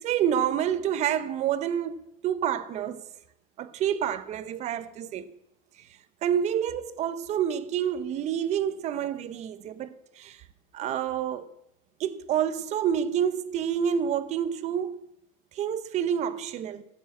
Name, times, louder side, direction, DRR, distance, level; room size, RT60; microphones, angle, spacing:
voice 1, 0.0-3.0 3.6-5.3 5.8-5.9 6.2-10.4 10.7-11.6 12.0-15.1 15.5-16.8, right 9 dB, 35° right, 0.9 m, -28 dB
14.0 x 8.2 x 8.5 m
cardioid pair, 150°, 19 cm